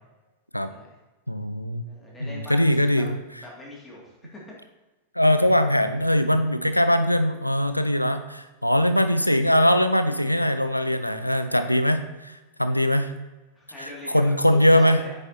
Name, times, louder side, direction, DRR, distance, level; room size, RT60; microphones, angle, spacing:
voice 1, 0.6-1.0 1.9-3.1 3.4-4.6 13.5-15.1, left 1 dB, 10° left, -4 dB, 2.5 m, -42 dB
voice 2, 1.3-1.9 2.2-3.2 5.2-13.1 13.8-15.0, equal, 90° left, 9 dB, 0.5 m, -21 dB
9.2 x 6.4 x 2.9 m, 1.1 s
figure-of-eight pair, 90°, 0 cm